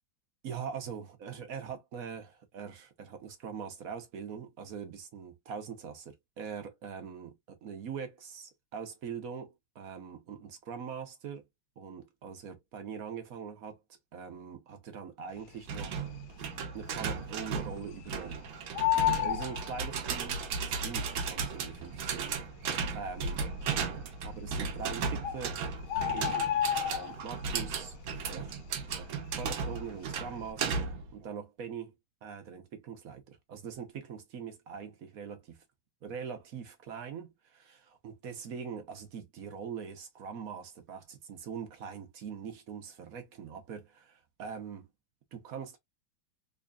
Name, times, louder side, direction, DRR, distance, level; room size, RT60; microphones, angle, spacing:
voice 1, 0.4-11.4 11.8-13.8 14.1-16.1 16.7-18.5 19.2-22.4 22.9-23.4 24.2-25.6 26.1-27.9 28.2-28.6 28.9-30.8 31.1-31.9 32.2-35.6 36.0-44.9 45.3-45.8, right 6 dB, 55° right, 1.1 m, -42 dB
sound 1, 15.7-31.1, right 5 dB, 75° right, 1.6 m, -35 dB
Bird, 15.8-16.4 16.8-16.9 17.1-18.3 18.6-20.4 21.3-21.4 22.0-22.1 22.3-22.4 23.0-23.5 24.5-24.6 24.9-25.0 25.2-27.5 27.9-28.2 28.5-29.9 30.2-30.5, left 11 dB, 90° left, 1.6 m, -31 dB
3.9 x 3.2 x 2.3 m
omnidirectional pair, 2.2 m